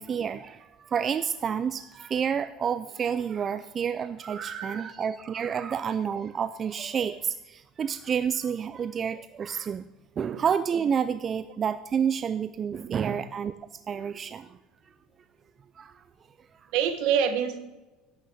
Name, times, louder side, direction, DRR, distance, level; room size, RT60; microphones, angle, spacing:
voice 1, 0.0-9.9 10.2-13.5 13.9-14.6 15.8-16.0, right 7 dB, 30° right, 12 dB, 0.3 m, -29 dB
voice 2, 4.3-4.9 10.3-10.4 12.9-13.2 16.7-17.6, right 8 dB, 65° right, 9 dB, 1.2 m, -28 dB
11.0 x 6.5 x 7.6 m, 1.1 s
cardioid pair, 145°, 0 cm